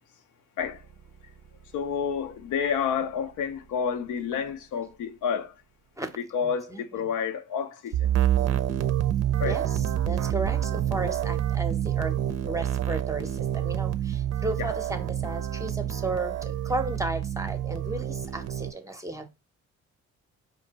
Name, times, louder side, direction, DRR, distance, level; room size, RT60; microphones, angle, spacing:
voice 1, 1.7-5.5 6.2-8.1 9.4-9.6 14.6-14.7, left 7 dB, 80° left, 0.6 m, -29 dB
voice 2, 6.4-7.1 9.5-12.1 12.4-19.3, right 2 dB, 10° right, 0.7 m, -34 dB
sound 1, 7.9-18.7, right 11 dB, 55° right, 0.5 m, -27 dB
4.3 x 2.7 x 2.8 m
cardioid pair, 90°, 30 cm